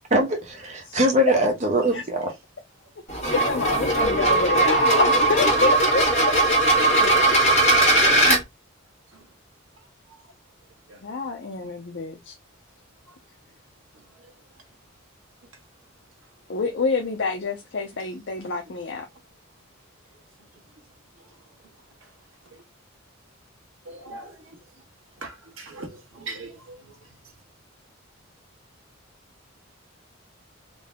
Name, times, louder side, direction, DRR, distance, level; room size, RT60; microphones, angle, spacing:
voice 1, 0.1-2.3, equal, 35° right, 0.8 m, -22 dB
sound 1, 3.1-8.4, right 2 dB, 30° left, 1.7 m, -19 dB
voice 2, 3.3-6.0 7.0-7.5 11.0-12.4 16.5-19.1, left 4 dB, 60° left, 0.6 m, -27 dB
voice 3, 23.8-24.6 25.2-27.2, right 2 dB, 75° right, 1.4 m, -41 dB
3.9 x 2.8 x 3.4 m
head